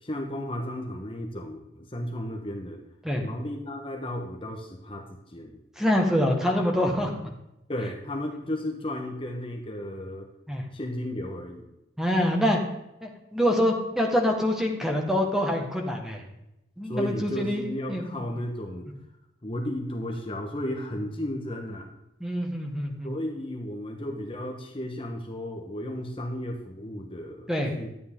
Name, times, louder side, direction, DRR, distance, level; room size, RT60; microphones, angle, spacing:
voice 1, 0.0-2.8 3.2-5.5 7.7-10.3 10.7-11.7 16.8-18.9 19.4-21.9 23.0-27.5 27.7-27.9, left 1 dB, 30° left, 2 dB, 1.2 m, -34 dB
voice 2, 5.8-7.1 10.5-10.6 12.0-12.6 13.0-16.2 16.8-18.2 22.2-23.1 27.5-27.7, equal, 5° right, 1 dB, 1.5 m, -25 dB
12.0 x 9.3 x 3.7 m, 0.88 s
head